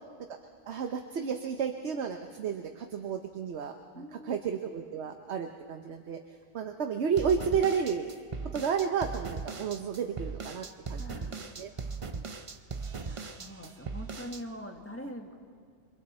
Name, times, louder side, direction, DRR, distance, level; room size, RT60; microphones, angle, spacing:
voice 1, 0.7-6.2 6.5-8.1 8.5-11.7, right 7 dB, 65° right, 5 dB, 1.2 m, -32 dB
voice 2, 4.0-4.4 10.9-12.3 13.0-15.4, equal, 10° left, 2 dB, 1.6 m, -44 dB
sound 1, 7.2-14.4, right 4 dB, 35° right, 0.6 m, -39 dB
28.0 x 23.0 x 4.3 m, 2.2 s
omnidirectional pair, 1.2 m